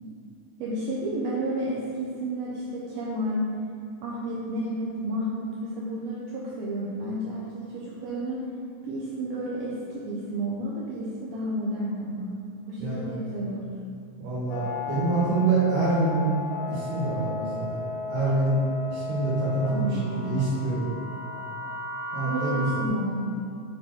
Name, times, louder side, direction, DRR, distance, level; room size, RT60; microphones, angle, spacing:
voice 1, 0.6-3.5 4.0-8.5 8.8-13.6 19.7-20.4 22.2-23.3, right 1 dB, 85° right, -6 dB, 1.4 m, -31 dB
voice 2, 14.2-16.3 16.7-17.8 18.1-18.6 18.9-20.9 22.1-22.7, right 3 dB, 70° right, -8 dB, 2.8 m, -26 dB
sound 1, 14.5-22.9, left 3 dB, 85° left, 2.7 m, -35 dB
6.7 x 4.4 x 4.4 m, 2.3 s
omnidirectional pair, 3.9 m